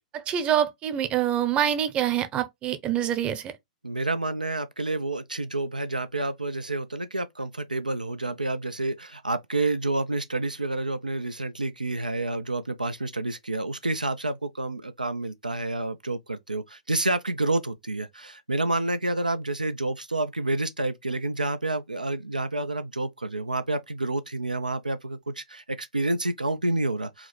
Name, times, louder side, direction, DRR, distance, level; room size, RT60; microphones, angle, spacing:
voice 1, 0.1-3.5, right 10 dB, 25° right, 0.7 m, -25 dB
voice 2, 3.8-27.3, right 2 dB, 90° right, 0.4 m, -29 dB
4.7 x 2.0 x 3.2 m
figure-of-eight pair, 110°, 4 cm